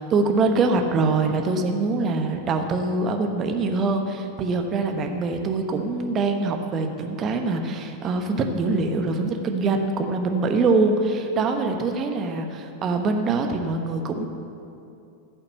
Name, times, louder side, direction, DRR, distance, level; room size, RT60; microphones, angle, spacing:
voice 1, 0.0-14.3, right 3 dB, 30° right, 4 dB, 1.1 m, -24 dB
15.0 x 5.8 x 8.1 m, 2.6 s
figure-of-eight pair, 90°, 0 cm